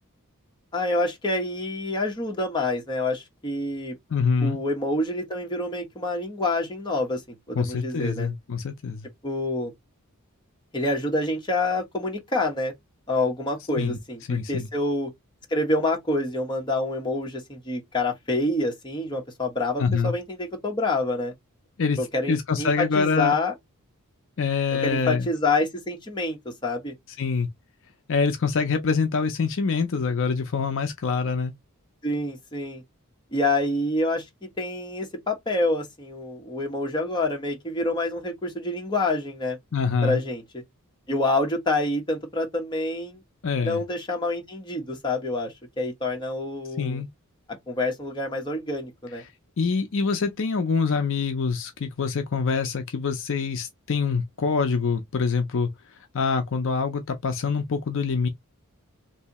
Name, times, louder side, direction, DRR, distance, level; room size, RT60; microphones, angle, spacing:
voice 1, 0.7-4.0 4.4-7.2 7.5-8.3 9.2-9.7 10.7-12.7 13.1-15.1 15.5-21.3 22.0-23.5 24.8-26.9 32.0-32.8 33.3-39.6 40.0-40.6 41.1-43.2 43.6-47.0 47.7-49.2, left 2 dB, 20° left, 1.1 m, -27 dB
voice 2, 4.1-4.6 7.6-9.1 13.8-14.0 14.3-14.7 19.8-20.1 21.8-22.0 22.3-23.3 24.4-25.3 27.2-27.5 28.1-31.5 39.7-40.2 43.4-43.8 46.8-47.1 49.6-55.7 56.1-58.3, left 5 dB, 60° left, 0.5 m, -25 dB
3.2 x 2.7 x 2.9 m
head